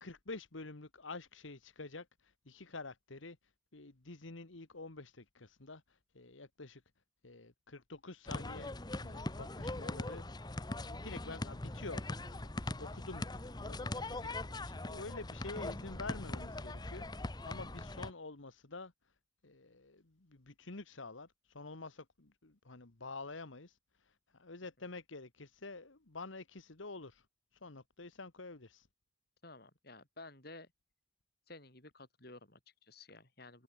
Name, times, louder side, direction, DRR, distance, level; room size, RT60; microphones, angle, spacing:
voice 1, 0.0-3.4 3.7-6.8 7.2-8.7 9.0-10.3 10.8-18.9 19.4-27.3 27.6-28.9, left 3 dB, 80° left, 1.7 m, -48 dB
sound 1, 8.3-18.1, left 2 dB, 20° left, 0.9 m, -41 dB
voice 2, 29.4-30.7 31.5-33.6, left 2 dB, 50° left, 6.9 m, -53 dB
head